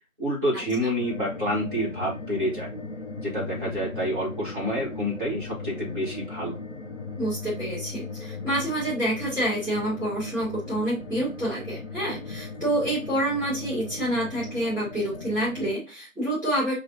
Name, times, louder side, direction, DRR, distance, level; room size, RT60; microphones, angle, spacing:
voice 1, 0.2-2.7 3.2-6.6, equal, 35° right, -6 dB, 1.5 m, -28 dB
sound 1, 1.0-15.8, left 3 dB, 55° left, 0.7 m, -38 dB
voice 2, 7.2-16.7, right 1 dB, 15° left, -7 dB, 1.4 m, -28 dB
5.3 x 2.5 x 2.6 m, 0.30 s
figure-of-eight pair, 165°, 42 cm